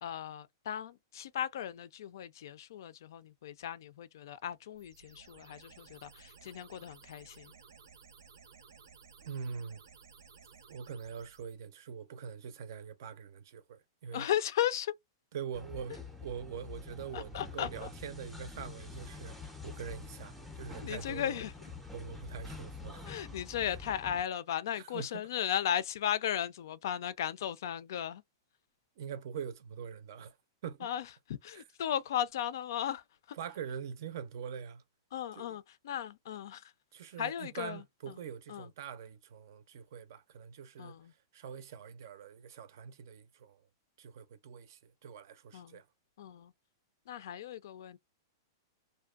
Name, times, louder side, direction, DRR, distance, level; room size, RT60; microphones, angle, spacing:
voice 1, 0.0-7.5 14.1-14.9 17.1-17.9 20.8-21.5 23.1-28.2 30.8-33.4 35.1-36.7 37.2-38.2 38.5-38.7 40.8-41.1 45.5-45.8 46.2-46.5 47.1-48.0, left 10 dB, 65° left, 0.3 m, -36 dB
sound 1, 4.8-11.6, right 5 dB, 90° right, 0.7 m, -57 dB
voice 2, 9.2-9.8 10.7-14.3 15.3-19.4 19.6-21.4 21.9-23.1 24.8-25.2 29.0-30.3 30.6-30.9 31.5-31.6 33.4-34.8 35.4-35.5 36.9-40.9 41.3-43.6 44.0-45.8, right 7 dB, 60° right, 0.5 m, -43 dB
sound 2, 15.5-24.2, left 4 dB, ahead, 0.5 m, -47 dB
2.6 x 2.2 x 2.3 m
hypercardioid pair, 150°, 2 cm